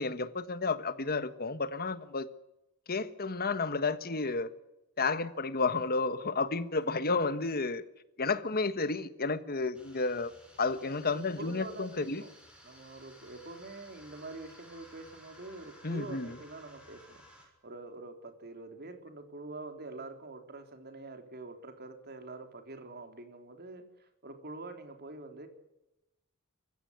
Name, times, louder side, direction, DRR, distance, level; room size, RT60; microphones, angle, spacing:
voice 1, 0.0-2.3 2.9-4.5 5.0-7.8 8.2-10.3 10.6-12.2 15.8-16.3, left 3 dB, 45° left, 13 dB, 1.4 m, -31 dB
voice 2, 6.9-7.3 11.1-12.3 12.6-25.5, right 2 dB, 45° right, 6 dB, 3.8 m, -46 dB
sound 1, 9.7-17.5, equal, 5° right, 6.9 m, -56 dB
24.5 x 16.0 x 9.6 m, 0.93 s
head